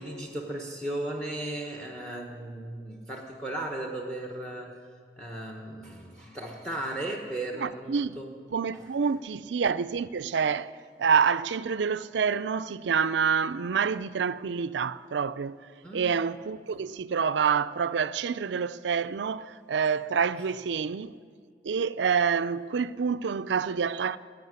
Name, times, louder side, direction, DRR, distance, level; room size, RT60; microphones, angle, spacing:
voice 1, 0.0-4.8 5.2-8.3 8.7-8.9 15.8-16.2, right 1 dB, 5° left, 1.1 m, -36 dB
voice 2, 7.6-8.2 8.5-10.7 11.0-15.6 15.9-21.2 21.6-24.2, right 6 dB, 90° right, 0.4 m, -27 dB
15.0 x 9.2 x 9.6 m
head